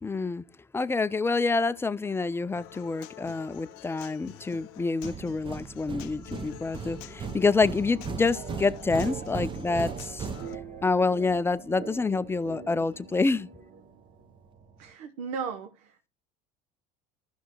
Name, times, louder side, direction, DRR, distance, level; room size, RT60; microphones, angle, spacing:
voice 1, 0.0-0.5 0.7-10.3 10.8-13.5, left 4 dB, 10° left, 0.4 m, -27 dB
Human voice / Acoustic guitar, 2.6-10.5, left 18 dB, 70° left, 0.5 m, -48 dB
sound 1, 5.0-11.0, right 6 dB, 25° right, 0.6 m, -38 dB
sound 2, 7.4-14.9, right 6 dB, 40° right, 1.1 m, -45 dB
voice 2, 14.8-16.1, right 6 dB, 75° right, 0.9 m, -36 dB
14.5 x 6.1 x 3.0 m
supercardioid pair, 90°, 20 cm